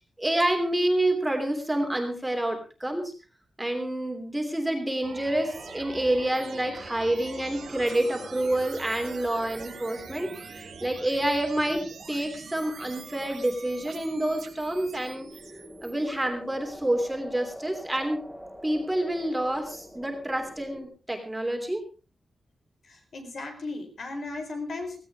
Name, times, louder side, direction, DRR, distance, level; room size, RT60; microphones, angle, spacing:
voice 1, 0.2-3.1 3.6-15.3 15.8-18.2 18.6-21.8, right 1 dB, 10° right, 4 dB, 3.1 m, -28 dB
sound 1, 5.0-15.9, right 6 dB, 85° right, 3.3 m, -44 dB
sound 2, 5.5-20.9, equal, 5° left, 4.0 m, -46 dB
voice 2, 22.9-25.0, left 3 dB, 60° left, 5 dB, 4.1 m, -36 dB
17.0 x 16.5 x 3.6 m, 0.33 s
wide cardioid pair, 150°, 0 cm